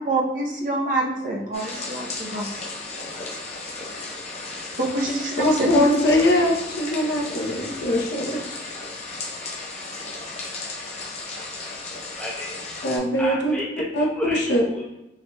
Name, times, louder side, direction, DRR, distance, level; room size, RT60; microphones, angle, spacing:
voice 1, 0.0-2.5 4.8-5.7, right 2 dB, 45° right, -1 dB, 0.7 m, -26 dB
sound 1, 1.5-13.0, left 3 dB, 35° left, 0.7 m, -35 dB
voice 2, 1.9-4.8 12.2-12.5 13.2-14.8, left 1 dB, 5° left, -6 dB, 0.8 m, -35 dB
voice 3, 5.4-8.4 12.8-13.5 13.9-14.6, left 1 dB, 70° left, 0 dB, 0.7 m, -21 dB
4.6 x 3.3 x 2.2 m, 0.94 s
head